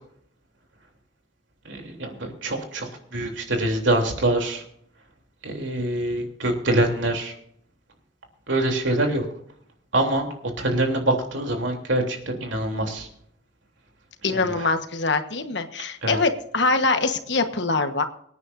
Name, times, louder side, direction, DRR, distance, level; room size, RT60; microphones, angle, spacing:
voice 1, 1.7-4.6 5.4-7.3 8.5-9.3 9.9-10.3 10.6-13.1 14.3-14.7 16.0-16.2, right 1 dB, 80° right, 2 dB, 3.3 m, -25 dB
voice 2, 14.2-18.0, left 3 dB, 65° left, 7 dB, 1.3 m, -23 dB
25.0 x 9.6 x 2.7 m, 0.68 s
head